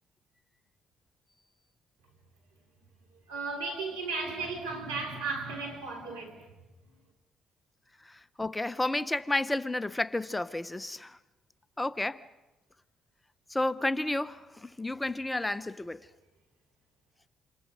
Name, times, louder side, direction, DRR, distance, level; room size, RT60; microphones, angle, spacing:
voice 1, 3.1-6.5, right 3 dB, 90° right, 4.1 m, -35 dB
voice 2, 8.4-11.2 11.8-12.2 13.5-16.0, left 2 dB, 15° left, 0.8 m, -31 dB
28.0 x 27.5 x 5.2 m
hypercardioid pair, 50°, 0 cm